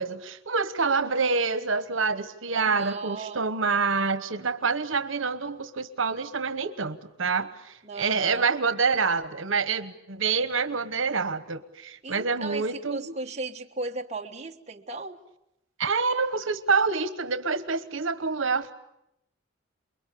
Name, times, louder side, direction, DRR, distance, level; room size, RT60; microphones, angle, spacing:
voice 1, 0.0-13.1 15.8-18.7, right 4 dB, 85° right, 12 dB, 1.2 m, -27 dB
voice 2, 2.5-3.5 7.8-8.6 12.0-15.2, right 3 dB, 35° right, 2 dB, 1.4 m, -36 dB
29.0 x 22.0 x 8.5 m, 0.84 s
head